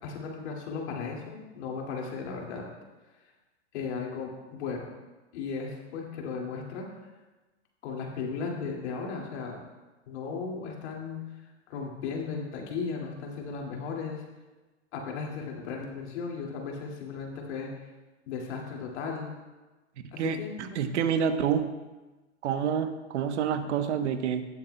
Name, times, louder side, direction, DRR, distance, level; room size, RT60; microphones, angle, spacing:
voice 1, 0.0-2.7 3.7-4.9 5.3-6.9 7.8-9.6 10.1-11.2 11.7-14.2 14.9-17.7 18.3-19.3 20.1-20.8, left 5 dB, 60° left, -1 dB, 2.3 m, -36 dB
voice 2, 20.2-21.7 22.4-24.5, right 7 dB, 70° right, 9 dB, 1.0 m, -28 dB
18.0 x 7.2 x 2.2 m, 1.2 s
hypercardioid pair, 125°, 37 cm